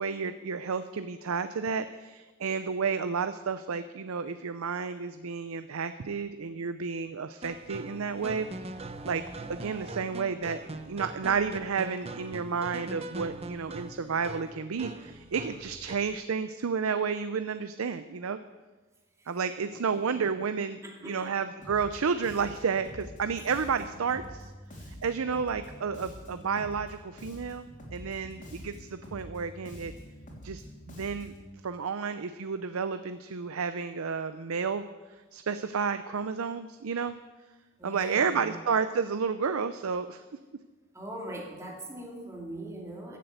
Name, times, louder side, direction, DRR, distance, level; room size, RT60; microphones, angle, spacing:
voice 1, 0.0-8.5 9.0-9.2 9.5-18.4 19.3-24.5 24.8-29.9 30.4-31.3 31.6-34.8 35.3-37.2 37.8-40.2, right 5 dB, 80° right, 11 dB, 0.6 m, -31 dB
sound 1, 7.4-16.1, right 2 dB, 30° right, 0.7 m, -42 dB
voice 2, 19.7-20.4 20.8-21.4 23.3-23.5 37.8-38.5 40.9-43.2, right 1 dB, 15° right, -1 dB, 2.5 m, -42 dB
Bass guitar, 21.6-22.0 22.2-26.9 27.2-31.5, equal, 40° left, 3.2 m, -46 dB
15.0 x 7.6 x 8.0 m, 1.3 s
head